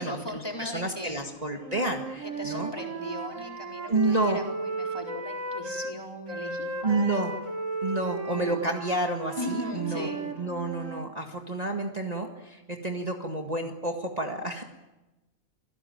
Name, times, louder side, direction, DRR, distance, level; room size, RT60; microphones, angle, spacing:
voice 1, 0.0-1.2 2.2-7.3 8.3-8.7 9.4-10.2, left 1 dB, 15° left, 1 dB, 4.2 m, -38 dB
voice 2, 0.6-2.7 3.9-4.4 6.8-7.3 7.8-10.1 10.4-14.6, right 2 dB, 30° right, 2 dB, 1.9 m, -29 dB
Wind instrument woodwind instrument, 1.6-6.0 6.3-11.1, right 3 dB, 65° right, 3.0 m, -35 dB
26.0 x 17.0 x 9.4 m, 1.0 s
omnidirectional pair, 1.4 m